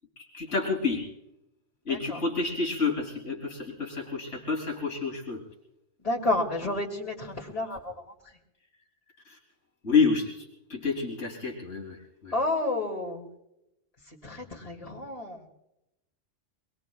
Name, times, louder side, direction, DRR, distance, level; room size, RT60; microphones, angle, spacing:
voice 1, 0.3-1.1 1.9-5.4 9.3-9.4 9.8-12.0 12.2-12.3, left 4 dB, 75° left, -1 dB, 3.4 m, -29 dB
voice 2, 1.9-2.2 6.0-8.1 12.3-13.3 14.1-15.5, left 2 dB, 30° left, -4 dB, 2.5 m, -31 dB
26.0 x 21.0 x 2.3 m, 0.85 s
omnidirectional pair, 1.3 m